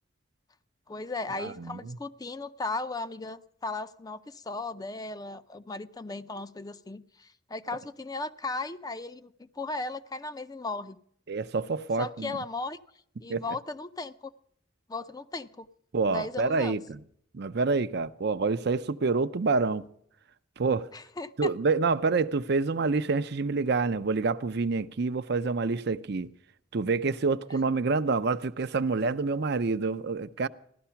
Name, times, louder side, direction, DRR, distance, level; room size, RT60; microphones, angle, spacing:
voice 1, 0.9-11.0 12.0-12.8 13.2-14.3 14.9-15.7 16.1-16.8 20.9-21.5, left 3 dB, 20° left, 0.5 m, -36 dB
voice 2, 1.4-2.0 11.3-12.3 13.3-13.4 15.9-17.0 17.3-19.8 20.6-20.9 21.4-26.3 26.7-30.5, right 4 dB, 60° right, 0.6 m, -27 dB
15.5 x 12.5 x 5.7 m
head